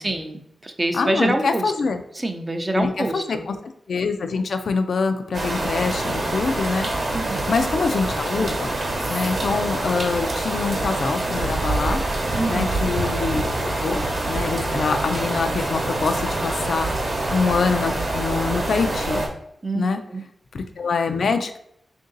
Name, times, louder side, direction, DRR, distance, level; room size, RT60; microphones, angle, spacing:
voice 1, 0.0-1.6 2.1-3.4 7.1-7.5 12.3-12.7 19.6-20.2, right 2 dB, 25° right, 5 dB, 0.5 m, -26 dB
voice 2, 0.9-2.0 2.7-3.6 3.9-6.9 7.5-8.8 9.1-12.0 12.5-14.0 14.3-19.2 19.7-20.0 20.5-21.6, left 4 dB, 75° left, 7 dB, 0.4 m, -25 dB
sound 1, 5.3-19.3, right 2 dB, 55° right, 1.0 m, -25 dB
3.7 x 2.6 x 3.8 m, 0.74 s
wide cardioid pair, 90°, 0 cm